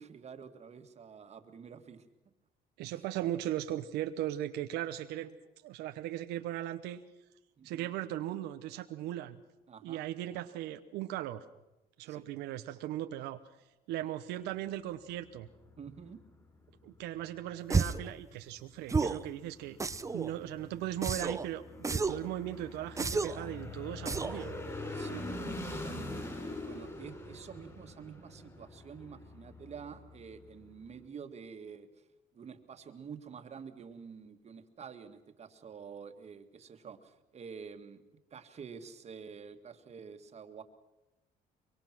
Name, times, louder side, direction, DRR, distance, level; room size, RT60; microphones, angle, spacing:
voice 1, 0.0-2.1 2.9-3.0 7.6-7.9 9.7-10.1 12.1-12.3 15.8-16.2 24.9-32.1 32.3-38.0 38.3-40.6, right 6 dB, 40° right, 7 dB, 1.9 m, -48 dB
voice 2, 2.8-5.4 5.6-7.0 7.6-9.4 9.8-11.5 12.0-13.4 13.9-15.5 16.8-19.8 20.1-24.5, right 13 dB, 90° right, 8 dB, 0.9 m, -38 dB
sound 1, 14.7-31.1, left 2 dB, 20° left, 6.8 m, -45 dB
sound 2, 17.7-18.1 18.9-19.3 19.8-20.3 21.0-21.5 21.8-22.3 23.0-23.5 24.1-24.4, right 4 dB, 20° right, 0.8 m, -31 dB
24.0 x 23.0 x 6.1 m, 1.0 s
cardioid pair, 110°, 17 cm